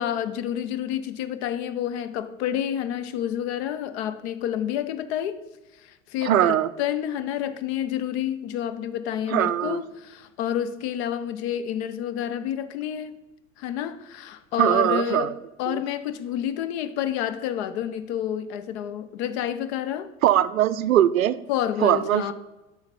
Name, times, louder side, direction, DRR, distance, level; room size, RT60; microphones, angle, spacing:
voice 1, 0.0-5.4 6.1-13.1 13.6-20.1 21.5-22.3, left 10 dB, 50° left, 12 dB, 0.7 m, -29 dB
voice 2, 6.2-6.7 9.3-9.8 14.6-15.3 15.7-15.8 20.2-21.4 21.8-22.3, right 12 dB, 80° right, 16 dB, 0.5 m, -21 dB
7.4 x 5.7 x 4.5 m, 1.1 s
figure-of-eight pair, 80°, 41 cm